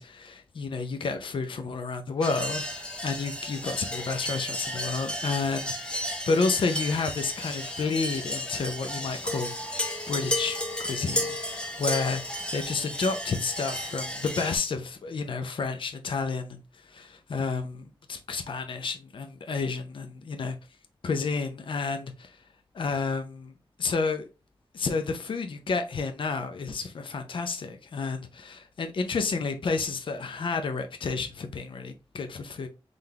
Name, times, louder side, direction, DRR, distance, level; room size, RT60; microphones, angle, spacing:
voice 1, 0.0-6.0 6.3-16.6 17.3-20.6 21.0-22.4 22.7-23.5 23.8-24.3 24.7-32.7, left 4 dB, 65° left, 0.5 m, -30 dB
sound 1, 2.2-14.6, left 1 dB, 10° left, 0.8 m, -33 dB
3.9 x 3.3 x 2.8 m
wide cardioid pair, 110°, 9 cm